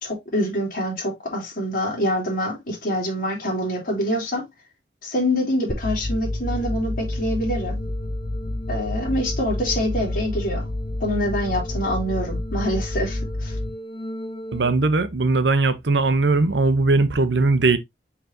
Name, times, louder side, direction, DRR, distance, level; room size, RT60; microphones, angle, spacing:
voice 1, 0.0-4.5 5.0-7.8 8.7-10.7 11.0-13.6, equal, 50° left, 3.5 m, -25 dB
sound 1, 5.7-14.7, left 1 dB, 30° left, 0.8 m, -29 dB
voice 2, 14.5-17.8, right 3 dB, 80° right, 0.9 m, -19 dB
6.0 x 5.8 x 2.8 m
head